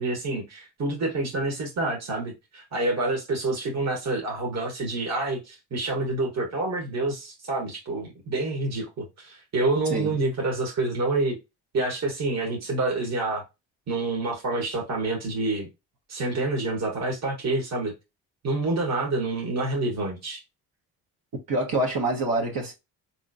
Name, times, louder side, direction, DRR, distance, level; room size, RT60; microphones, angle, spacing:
voice 1, 0.0-11.4 11.7-13.4 13.9-15.7 16.1-17.9 18.4-20.4, right 2 dB, 40° right, 1.3 m, -27 dB
voice 2, 21.5-22.7, right 2 dB, 60° right, 1.1 m, -26 dB
3.7 x 3.0 x 2.6 m
cardioid pair, 75°, 39 cm